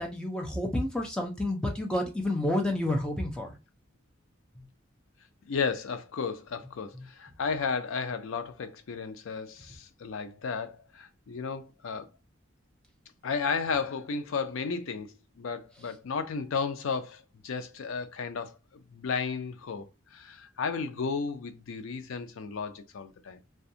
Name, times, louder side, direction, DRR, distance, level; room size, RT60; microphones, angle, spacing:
voice 1, 0.0-3.6 4.6-4.7 6.9-7.0, left 1 dB, 5° left, 0.5 m, -30 dB
voice 2, 5.5-12.1 13.2-23.4, left 5 dB, 70° left, 0.4 m, -33 dB
2.4 x 2.3 x 2.7 m
head